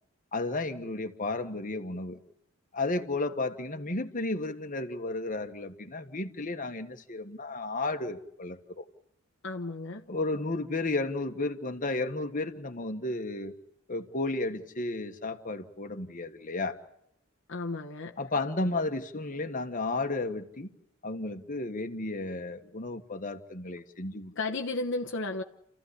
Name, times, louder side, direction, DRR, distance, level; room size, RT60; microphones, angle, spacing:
voice 1, 0.3-2.2 2.7-8.8 10.1-13.5 13.9-16.8 18.2-20.7 21.0-24.3, left 2 dB, 40° left, 1.6 m, -33 dB
voice 2, 9.4-10.1 17.5-18.2 24.4-25.4, left 3 dB, 60° left, 1.1 m, -33 dB
30.0 x 15.0 x 10.0 m
head